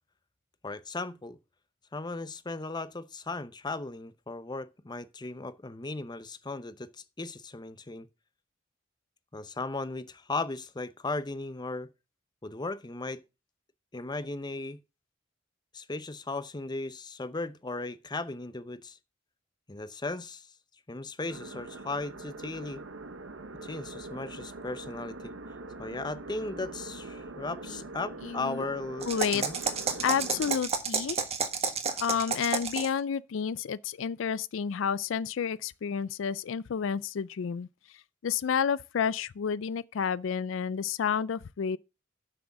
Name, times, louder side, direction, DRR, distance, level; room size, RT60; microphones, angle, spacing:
voice 1, 0.6-1.4 1.9-6.9 7.2-8.1 9.3-11.9 12.4-13.2 13.9-14.8 15.7-19.0 19.7-20.5 20.9-22.8 23.6-25.3 25.8-29.1 29.3-29.5, left 3 dB, 20° left, 0.7 m, -36 dB
sound 1, 21.3-30.5, right 2 dB, 85° right, 1.1 m, -43 dB
voice 2, 28.2-28.6 29.1-29.4 30.0-31.2 32.0-37.7 38.2-41.8, left 7 dB, 75° left, 0.4 m, -30 dB
sound 2, 29.0-33.0, right 5 dB, 35° right, 1.4 m, -31 dB
7.8 x 6.1 x 7.1 m
head